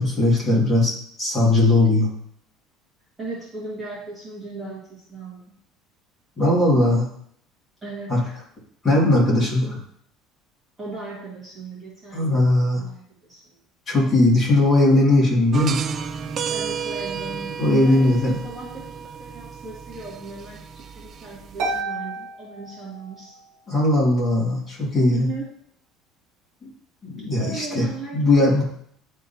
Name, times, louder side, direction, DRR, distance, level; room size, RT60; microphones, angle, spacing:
voice 1, 0.0-2.1 6.4-7.1 8.1-8.2 8.8-9.8 12.1-12.8 13.9-15.8 17.6-18.4 23.7-25.3 27.0-27.9 28.1-28.6, left 2 dB, 20° left, -6 dB, 2.4 m, -19 dB
voice 2, 3.2-5.5 7.8-8.4 10.8-13.6 13.9-14.0 16.5-23.3 25.1-25.5 27.4-28.6, right 4 dB, 10° right, -7 dB, 1.9 m, -37 dB
sound 1, 15.5-21.8, right 7 dB, 30° right, 0.3 m, -32 dB
Harp, 21.6-23.5, right 2 dB, 60° right, 1.8 m, -31 dB
10.5 x 3.6 x 2.9 m, 0.64 s
cardioid pair, 170°, 0 cm